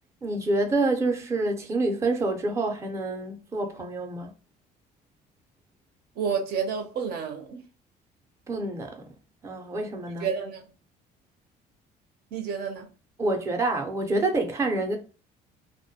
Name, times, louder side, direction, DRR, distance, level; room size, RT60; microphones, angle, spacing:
voice 1, 0.2-4.3 8.5-9.1 9.4-10.3 13.2-15.0, right 2 dB, 15° right, 0.5 m, -27 dB
voice 2, 6.2-7.6 10.2-10.6 12.3-12.9, right 6 dB, 70° right, 0.7 m, -30 dB
2.2 x 2.1 x 2.7 m
cardioid pair, 110°, 17 cm